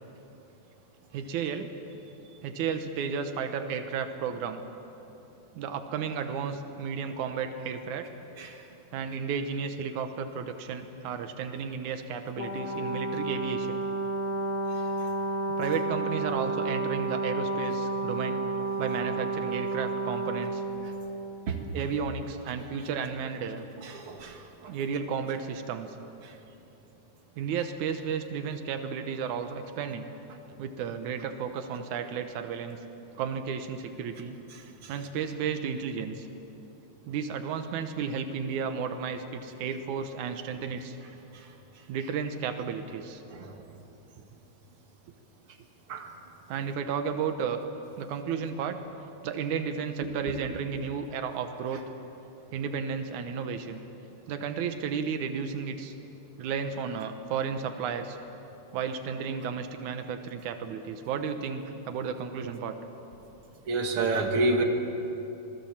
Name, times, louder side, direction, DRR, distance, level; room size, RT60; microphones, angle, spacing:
voice 1, 1.1-1.7 2.4-4.6 5.5-8.1 8.9-13.8 15.6-18.4 18.8-20.6 21.7-23.6 24.7-26.0 27.4-30.1 30.6-32.8 33.2-34.4 34.9-36.3 37.1-41.0 41.9-43.2 46.5-47.6 48.0-48.8 49.2-51.8 52.5-53.8 54.2-55.9 56.4-58.2 58.7-62.8, right 6 dB, 90° right, 7 dB, 2.5 m, -33 dB
Brass instrument, 12.4-21.1, right 2 dB, 80° left, 4.3 m, -31 dB
voice 2, 23.9-24.3 43.4-43.5 45.9-46.1 63.7-64.6, right 2 dB, 50° right, 2 dB, 2.7 m, -27 dB
26.5 x 19.5 x 7.4 m, 2.9 s
omnidirectional pair, 3.4 m